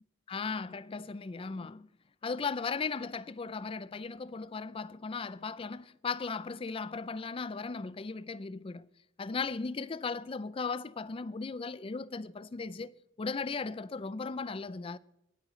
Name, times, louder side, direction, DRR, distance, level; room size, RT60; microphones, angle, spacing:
voice 1, 0.3-1.9 2.2-8.9 9.2-15.0, left 4 dB, 30° left, 0.4 m, -37 dB
18.5 x 8.7 x 3.1 m
head